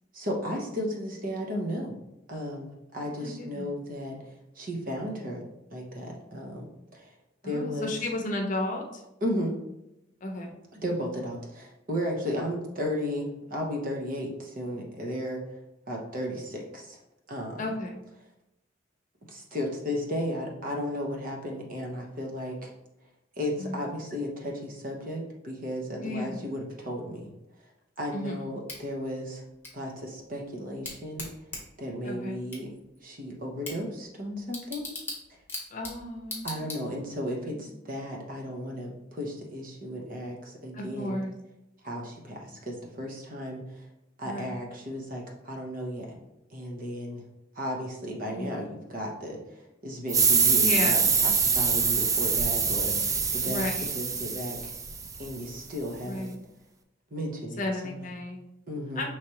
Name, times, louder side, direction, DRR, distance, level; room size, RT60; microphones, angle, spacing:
voice 1, 0.1-1.9 2.3-4.2 4.6-5.4 5.7-7.1 7.4-7.9 9.2-9.5 10.7-15.4 15.9-17.0 17.3-17.6 19.3-22.7 23.4-27.3 28.0-29.4 29.7-31.2 31.8-32.7 33.0-34.9 36.4-41.2 41.8-43.8 44.2-46.1 46.5-47.2 47.6-49.4 49.8-53.6 53.9-54.7 55.2-56.3 57.1-58.0 58.7-59.1, equal, 50° right, 0 dB, 0.9 m, -34 dB
voice 2, 3.0-3.8 7.4-9.0 10.2-10.6 17.6-18.0 23.6-24.1 26.0-26.5 28.1-28.5 32.0-32.5 35.7-36.9 37.4-37.7 40.7-41.3 44.2-44.6 48.3-48.6 50.5-51.1 53.4-53.9 56.0-56.4 57.6-58.5 58.9-59.1, left 1 dB, 45° left, 2 dB, 0.7 m, -34 dB
Bicycle / Tick, 28.7-37.2, left 2 dB, 10° left, 1.1 m, -42 dB
sound 1, 50.1-55.4, right 5 dB, 20° right, 0.3 m, -25 dB
5.0 x 3.2 x 2.9 m, 0.89 s
head